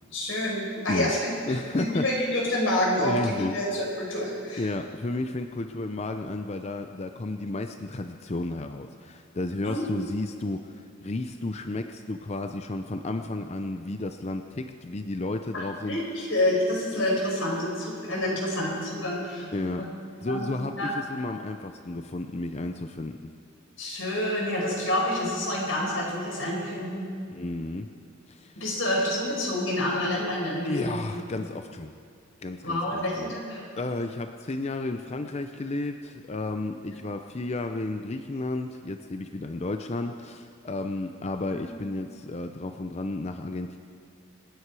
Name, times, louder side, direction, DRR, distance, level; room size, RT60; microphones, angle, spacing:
voice 1, 0.1-1.3 1.7-4.6 9.6-9.8 15.5-19.5 19.8-19.9 20.3-20.9 23.8-27.1 28.6-31.0 32.6-33.6 41.5-41.6, left 1 dB, 90° left, -3 dB, 4.9 m, -28 dB
voice 2, 1.5-2.4 3.0-3.6 4.6-16.3 19.5-19.9 20.2-23.3 27.3-27.9 28.3-28.8 30.6-31.9 32.4-33.4 33.8-43.8, left 2 dB, 35° left, 6 dB, 0.6 m, -32 dB
26.5 x 9.7 x 4.8 m, 2.5 s
head